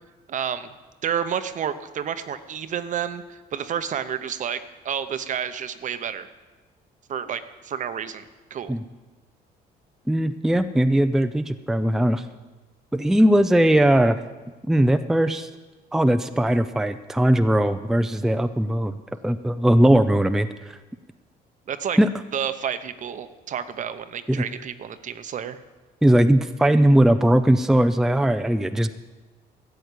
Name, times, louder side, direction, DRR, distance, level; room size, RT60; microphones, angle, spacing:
voice 1, 0.3-0.7 1.0-6.3 7.1-8.3 8.5-8.8 21.7-22.0 22.3-25.6, right 8 dB, 50° right, 12 dB, 0.9 m, -30 dB
voice 2, 10.1-12.2 12.9-14.2 14.7-15.5 15.9-19.0 19.2-20.5 22.0-22.1 24.3-24.4 26.0-28.9, right 1 dB, 5° right, 10 dB, 0.5 m, -19 dB
13.5 x 7.8 x 8.4 m, 1.2 s
cardioid pair, 110°, 17 cm